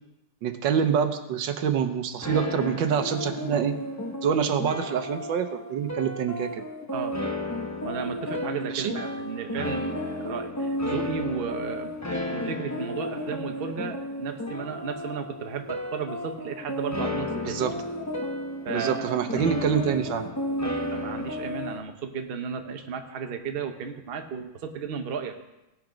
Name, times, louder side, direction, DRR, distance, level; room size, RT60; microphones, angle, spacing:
voice 1, 0.4-3.8 4.2-6.6 8.7-8.9 17.4-17.7 18.7-20.3, right 8 dB, 85° right, 8 dB, 1.6 m, -26 dB
sound 1, 2.2-21.8, left 1 dB, 25° left, 0.3 m, -33 dB
voice 2, 7.8-11.9 12.3-17.6 18.6-19.4 20.6-25.4, right 6 dB, 45° right, 5 dB, 0.8 m, -34 dB
18.0 x 6.1 x 5.1 m, 0.96 s
omnidirectional pair, 2.0 m